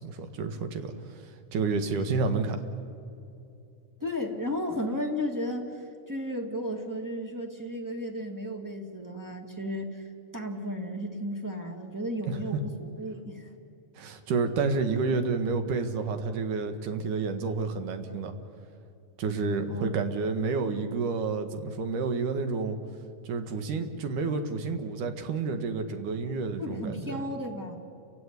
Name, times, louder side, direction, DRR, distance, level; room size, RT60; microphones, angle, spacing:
voice 1, 0.0-2.6 12.2-12.6 14.0-18.3 19.2-22.8 23.2-27.2, right 4 dB, 70° right, 7 dB, 2.9 m, -30 dB
voice 2, 4.0-10.0 10.3-13.5 19.7-19.9 26.6-27.8, equal, 10° right, 2 dB, 1.1 m, -34 dB
29.5 x 16.0 x 9.6 m, 2.7 s
omnidirectional pair, 3.9 m